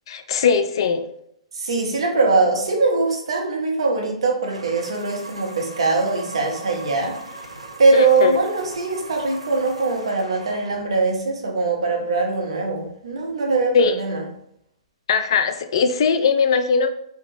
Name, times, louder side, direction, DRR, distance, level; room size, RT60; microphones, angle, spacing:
voice 1, 0.1-1.0 7.9-8.4 13.7-13.9 15.1-16.9, left 6 dB, 55° left, 8 dB, 0.3 m, -19 dB
voice 2, 1.5-7.2 7.8-14.2, right 3 dB, 65° right, 1 dB, 0.9 m, -21 dB
sound 1, 4.4-11.0, right 2 dB, 85° right, 0.5 m, -40 dB
2.8 x 2.3 x 3.9 m, 0.73 s
figure-of-eight pair, 115°, 3 cm